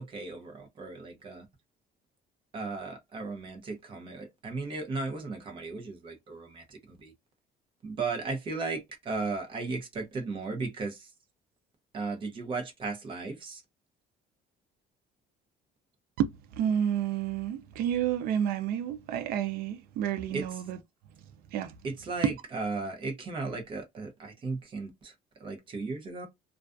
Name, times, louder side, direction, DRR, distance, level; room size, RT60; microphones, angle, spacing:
voice 1, 0.0-1.5 2.5-7.1 7.8-11.1 11.9-13.6 20.3-20.6 21.8-25.1 25.4-26.3, right 3 dB, 30° right, 0.7 m, -36 dB
voice 2, 16.2-20.8 21.5-21.7 22.2-22.3, right 9 dB, 65° right, 0.4 m, -30 dB
2.3 x 2.3 x 2.4 m
cardioid pair, 175°, 16 cm